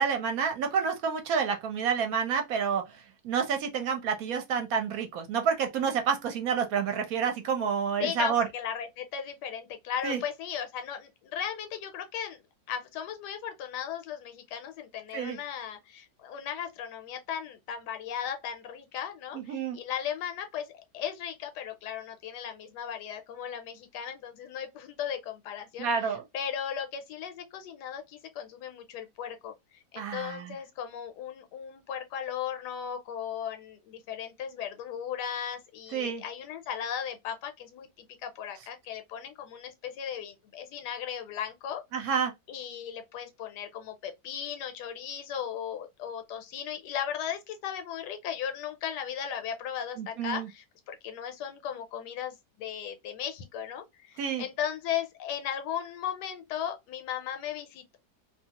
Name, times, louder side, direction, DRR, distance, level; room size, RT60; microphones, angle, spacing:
voice 1, 0.0-8.5 10.0-10.2 15.1-15.4 19.3-19.8 25.8-26.2 30.0-30.6 35.9-36.2 41.9-42.3 50.0-50.5 54.2-54.4, right 6 dB, 65° right, 1.0 m, -29 dB
voice 2, 8.0-12.4 12.7-41.8 42.5-58.0, left 9 dB, 85° left, 1.2 m, -36 dB
2.7 x 2.3 x 2.8 m
omnidirectional pair, 1.7 m